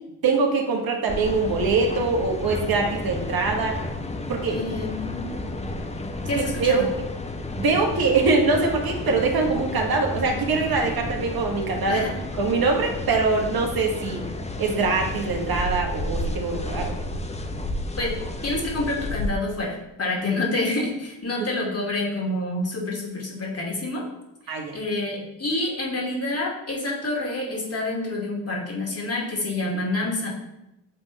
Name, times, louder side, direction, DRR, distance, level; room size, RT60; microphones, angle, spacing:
voice 1, 0.2-3.8 4.3-4.6 6.6-6.8 7.6-12.0 12.4-14.2 14.6-16.9 24.5-24.7, right 4 dB, 55° right, 2 dB, 1.4 m, -23 dB
sound 1, 1.1-19.3, left 2 dB, 15° left, 0.8 m, -32 dB
voice 2, 4.5-5.3 6.3-6.9 11.9-12.2 18.0-18.1 18.4-24.0 24.4-30.3, left 2 dB, 35° left, -2 dB, 2.3 m, -28 dB
7.4 x 3.5 x 4.1 m, 0.90 s
supercardioid pair, 60°, 43 cm